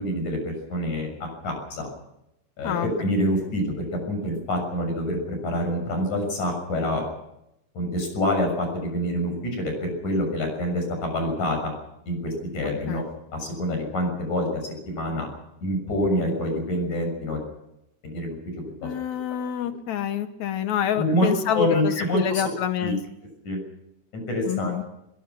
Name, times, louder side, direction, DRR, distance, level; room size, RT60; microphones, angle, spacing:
voice 1, 0.0-1.9 2.6-7.0 7.7-11.7 12.1-13.0 13.3-14.6 14.9-15.3 15.6-17.4 18.0-18.4 18.8-18.9 20.9-22.4 22.8-22.9 23.4-23.6 24.1-24.9, left 1 dB, 45° left, 4 dB, 7.9 m, -26 dB
voice 2, 18.8-23.0 24.4-24.8, left 9 dB, 85° left, 9 dB, 1.6 m, -27 dB
22.5 x 22.5 x 6.1 m, 0.85 s
omnidirectional pair, 4.8 m